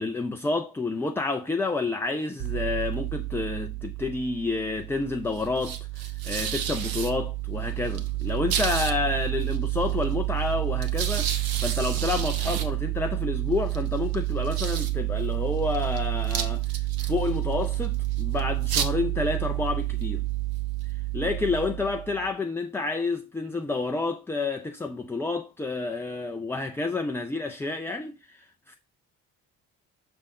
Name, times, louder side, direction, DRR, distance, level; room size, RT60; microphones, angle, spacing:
voice 1, 0.0-20.2 21.1-28.8, left 3 dB, 5° left, 0.3 m, -29 dB
sound 1, 2.4-22.3, right 15 dB, 45° right, 0.9 m, -29 dB
6.1 x 3.4 x 5.4 m
figure-of-eight pair, 40°, 49 cm